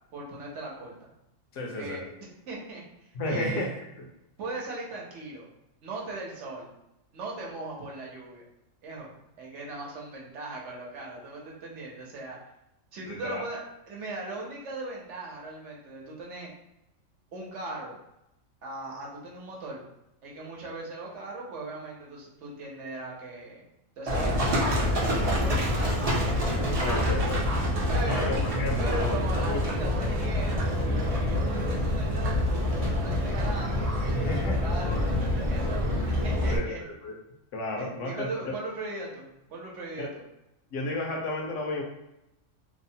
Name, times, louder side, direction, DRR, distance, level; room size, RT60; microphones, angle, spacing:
voice 1, 0.1-1.1 1.8-3.7 4.4-5.5 5.8-6.7 7.1-8.4 8.8-9.1 9.4-12.4 12.9-16.5 17.3-17.9 18.6-19.8 20.2-23.6 24.0-27.3 27.9-28.3 28.8-35.8 36.2-36.8 37.8-40.2, right 2 dB, 70° right, -3 dB, 1.0 m, -39 dB
voice 2, 1.5-2.0 3.1-3.7 13.1-13.4 26.8-27.5 28.0-29.6 34.1-34.6 36.5-37.2 37.5-38.3 40.0-40.1 40.7-41.8, left 1 dB, 75° left, 1 dB, 0.9 m, -32 dB
Livestock farm animals working animals, 24.1-36.6, left 1 dB, 40° right, 0.5 m, -26 dB
2.9 x 2.1 x 2.6 m, 0.85 s
omnidirectional pair, 1.3 m